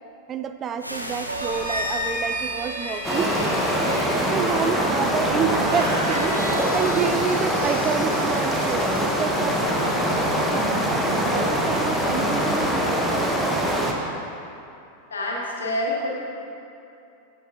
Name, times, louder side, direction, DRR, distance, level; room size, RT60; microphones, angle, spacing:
voice 1, 0.3-3.3 3.9-9.6 9.9-10.1 10.5-13.6, right 7 dB, 25° right, 9 dB, 0.3 m, -29 dB
sound 1, 0.8-4.5, equal, 90° left, 0.7 m, -39 dB
sound 2, 1.3-12.9, equal, 80° right, 1.7 m, -32 dB
sound 3, 3.0-13.9, equal, ahead, 0.9 m, -23 dB
voice 2, 15.1-16.1, left 1 dB, 70° left, -3 dB, 1.7 m, -27 dB
14.5 x 6.8 x 2.5 m, 2.6 s
figure-of-eight pair, 90°, 0 cm